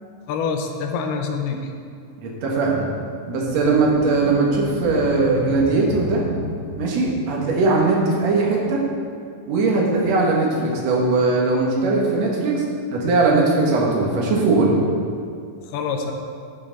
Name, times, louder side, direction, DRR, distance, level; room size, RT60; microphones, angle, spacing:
voice 1, 0.3-1.7 15.7-16.1, left 5 dB, 90° left, 4 dB, 2.8 m, -25 dB
voice 2, 2.2-2.9 3.3-6.2 6.8-8.8 9.5-12.6 12.9-14.8, right 3 dB, 55° right, -2 dB, 2.1 m, -19 dB
sound 1, 3.5-7.7, left 2 dB, 70° left, 2.4 m, -32 dB
12.0 x 6.9 x 4.0 m, 2.4 s
omnidirectional pair, 4.5 m